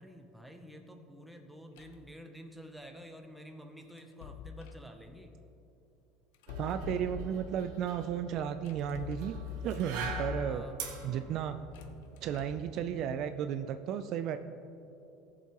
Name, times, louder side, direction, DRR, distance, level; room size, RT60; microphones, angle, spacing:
voice 1, 0.0-5.3 10.5-10.9, equal, ahead, 3 dB, 0.6 m, -50 dB
sound 1, 1.8-2.1 4.0-4.9 6.3-7.7 8.7-10.8 11.6-12.7, left 6 dB, 85° left, 0.6 m, -43 dB
sound 2, 6.5-13.4, right 5 dB, 70° right, 1.4 m, -45 dB
voice 2, 6.6-9.4 9.6-10.7 11.0-11.6 12.2-14.4, right 9 dB, 40° right, 9 dB, 0.3 m, -34 dB
17.5 x 7.3 x 3.0 m, 2.8 s
cardioid pair, 175°, 0 cm